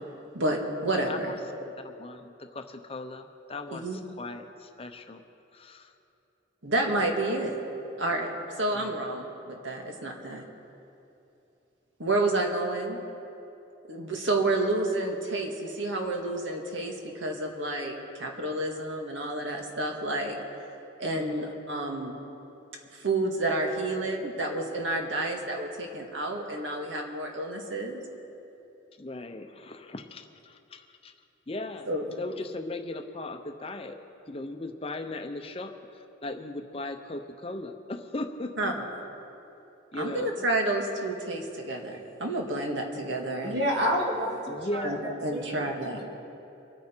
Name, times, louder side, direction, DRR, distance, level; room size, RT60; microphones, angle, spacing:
voice 1, 0.3-1.3 3.7-4.0 6.6-7.5 8.0-8.3 8.6-10.4 12.0-13.0 13.9-20.4 21.0-22.2 22.9-28.0 31.9-32.0 38.6-38.9 40.0-43.7 44.8-46.0, right 2 dB, 75° right, 2 dB, 1.8 m, -30 dB
voice 2, 1.1-5.2 5.5-5.9 8.7-8.9 21.1-21.5 29.0-31.1 31.5-31.9 32.2-34.0 34.3-38.7 39.9-40.4 44.5-45.2, left 2 dB, 30° left, 6 dB, 0.7 m, -38 dB
voice 3, 43.4-45.7, equal, 60° right, -1 dB, 2.3 m, -29 dB
24.5 x 9.5 x 4.5 m, 2.9 s
head